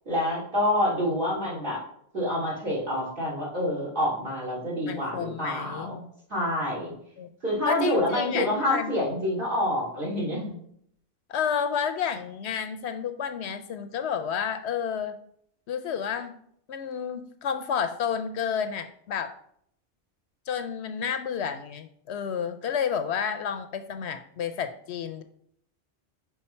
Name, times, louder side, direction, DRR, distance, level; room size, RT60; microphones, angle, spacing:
voice 1, 0.0-1.8 2.1-6.0 6.3-6.9 7.4-10.5, left 1 dB, 50° right, -6 dB, 3.2 m, -27 dB
voice 2, 4.9-6.0 7.2-7.3 7.7-8.9 11.3-15.2 15.7-16.3 16.7-19.3 20.5-25.2, left 7 dB, 75° left, 9 dB, 0.9 m, -30 dB
5.8 x 4.8 x 4.4 m, 0.68 s
omnidirectional pair, 1.1 m